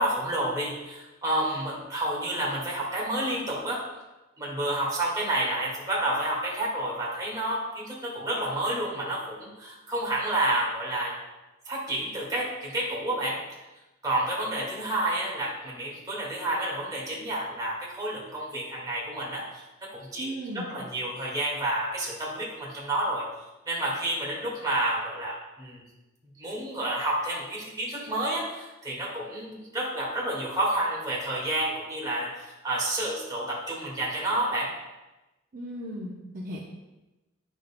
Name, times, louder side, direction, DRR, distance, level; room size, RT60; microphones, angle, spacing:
voice 1, 0.0-3.9 4.4-11.1 11.7-13.4 14.0-23.3 23.7-25.8 26.4-34.7, right 1 dB, 20° right, -5 dB, 1.8 m, -30 dB
voice 2, 20.2-20.7 35.5-36.6, equal, 45° right, -4 dB, 0.7 m, -36 dB
9.2 x 6.2 x 2.2 m, 1.0 s
head